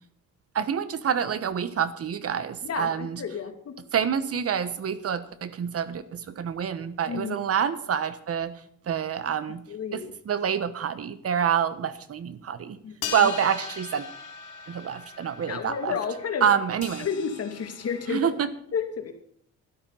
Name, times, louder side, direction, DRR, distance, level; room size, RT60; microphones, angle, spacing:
voice 1, 0.5-3.2 3.9-8.5 8.9-9.6 9.9-12.8 13.1-14.1 14.7-15.9 16.4-17.1 18.1-18.5, right 8 dB, 50° right, 14 dB, 1.2 m, -27 dB
voice 2, 2.6-3.8 7.1-7.4 9.7-10.1 12.8-13.3 15.5-16.5 17.0-18.3 18.7-19.1, left 6 dB, 55° left, 5 dB, 2.4 m, -31 dB
sound 1, 13.0-18.3, left 7 dB, 80° left, 2.2 m, -40 dB
12.0 x 12.0 x 5.6 m, 0.65 s
cardioid pair, 90°, 30 cm